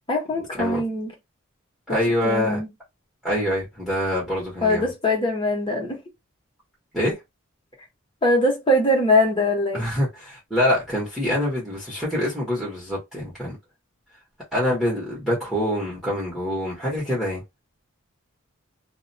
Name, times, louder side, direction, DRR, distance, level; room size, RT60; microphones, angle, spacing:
voice 1, 0.1-1.1 1.9-2.0 2.2-2.7 4.6-6.0 8.2-9.8, left 1 dB, 25° left, 1.0 m, -22 dB
voice 2, 1.9-2.6 3.2-4.9 6.9-7.2 9.7-13.6 14.5-17.4, left 1 dB, 5° right, 1.0 m, -25 dB
2.4 x 2.1 x 2.6 m
head